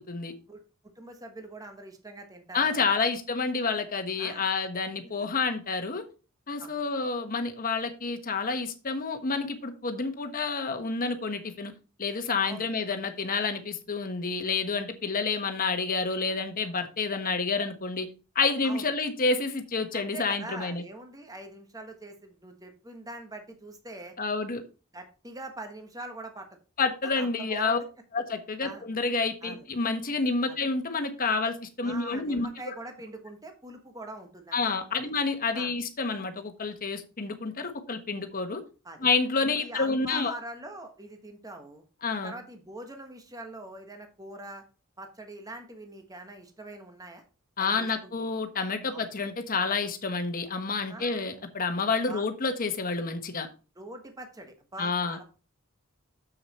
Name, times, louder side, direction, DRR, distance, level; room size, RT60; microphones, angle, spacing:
voice 1, 1.0-2.8 4.2-4.5 6.6-7.1 12.4-12.7 18.6-18.9 19.9-24.1 24.9-26.5 27.1-27.8 28.6-28.9 29.4-29.6 30.5-30.6 31.8-34.6 34.9-35.1 35.5-35.7 38.8-39.1 39.5-41.8 42.2-44.6 45.0-47.2 47.6-48.3 48.9-49.1 50.7-51.2 52.1-52.3 53.8-55.2, right 2 dB, 15° right, 5 dB, 1.3 m, -43 dB
voice 2, 2.5-6.0 6.5-11.7 12.0-18.1 18.3-20.8 24.2-24.6 26.8-27.8 28.1-32.5 34.5-38.6 39.0-40.3 42.0-42.3 47.6-53.5 54.8-55.2, left 4 dB, 40° left, 7 dB, 1.2 m, -29 dB
7.3 x 6.6 x 4.2 m, 0.34 s
head